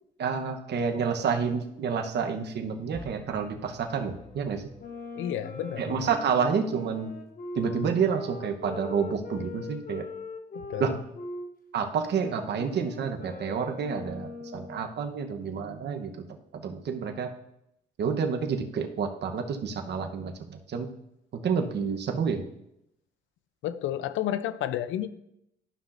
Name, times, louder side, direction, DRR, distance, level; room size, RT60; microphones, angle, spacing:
voice 1, 0.2-4.7 5.8-7.1 7.6-10.0 10.8-10.9 11.7-16.3 16.5-17.3 18.0-20.9 21.4-22.4, right 6 dB, 60° right, 0.9 m, -29 dB
sound 1, 2.9-5.1, left 3 dB, 25° left, 1.2 m, -49 dB
sound 2, 4.8-11.5 11.9-14.9, left 2 dB, 45° left, 1.1 m, -41 dB
voice 2, 5.2-6.1 10.5-11.0 23.6-25.1, left 11 dB, 80° left, 0.5 m, -31 dB
12.5 x 5.7 x 2.5 m
cardioid pair, 90°, 20 cm